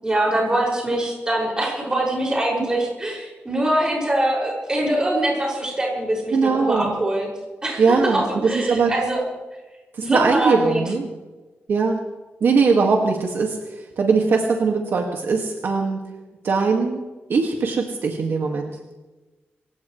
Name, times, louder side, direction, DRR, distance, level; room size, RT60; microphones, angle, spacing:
voice 1, 0.0-7.3 7.6-9.2 10.0-10.8, right 1 dB, 20° right, -2 dB, 6.2 m, -23 dB
voice 2, 6.3-6.9 7.8-8.9 10.0-11.1 11.7-12.0 12.4-13.6 14.0-16.0 16.4-17.0 17.3-18.7, right 4 dB, 60° right, 1 dB, 2.0 m, -20 dB
28.0 x 16.0 x 3.2 m, 1.2 s
wide cardioid pair, 160°, 4 cm